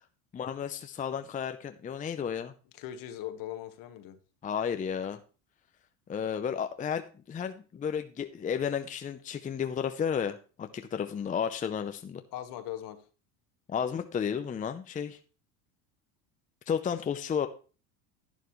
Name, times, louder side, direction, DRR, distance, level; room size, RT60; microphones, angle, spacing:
voice 1, 0.3-2.5 4.4-5.2 6.1-12.2 13.7-15.2 16.7-17.5, left 7 dB, 20° left, 8 dB, 0.6 m, -32 dB
voice 2, 2.7-4.2 12.3-13.0, left 12 dB, 60° left, 10 dB, 1.4 m, -40 dB
11.0 x 9.1 x 3.1 m, 0.35 s
supercardioid pair, 105°, 38 cm